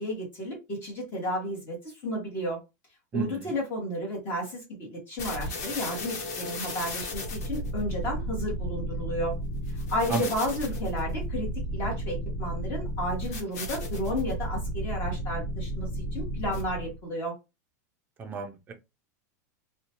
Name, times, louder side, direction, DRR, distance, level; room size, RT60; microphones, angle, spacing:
voice 1, 0.0-2.6 3.1-9.4 9.7-17.3, equal, 25° left, 1.2 m, -32 dB
voice 2, 3.1-3.5 10.1-10.2 18.2-18.7, right 4 dB, 20° right, 0.5 m, -31 dB
sound 1, 5.2-17.0, equal, 65° left, 1.1 m, -33 dB
2.7 x 2.2 x 2.9 m
supercardioid pair, 165°, 9 cm